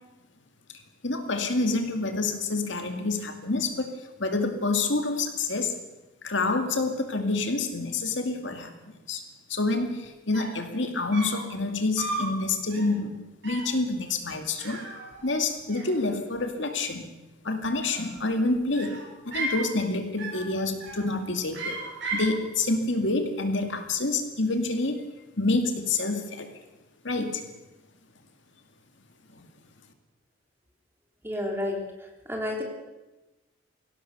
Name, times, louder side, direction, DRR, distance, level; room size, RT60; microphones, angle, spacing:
voice 1, 1.0-3.9 4.2-5.7 6.2-8.7 9.1-9.2 9.5-13.1 13.4-14.8 15.2-17.1 17.4-19.0 19.3-21.8 22.1-25.0 25.4-26.5 27.0-27.4 29.3-29.4, left 3 dB, 60° left, 6 dB, 2.2 m, -27 dB
sound 1, 10.0-10.1 10.3-10.7 11.1-11.5 12.0-12.3 12.7-13.0 13.4-13.8 14.6-15.4 15.7-16.4 17.6-18.3 18.7-19.7 20.2-20.5 20.8-21.2 21.5-22.4, right 2 dB, 55° right, 6.6 m, -35 dB
voice 2, 31.2-31.8 32.3-32.6, left 1 dB, 10° right, 1 dB, 3.7 m, -30 dB
23.5 x 17.5 x 6.8 m, 1.1 s
head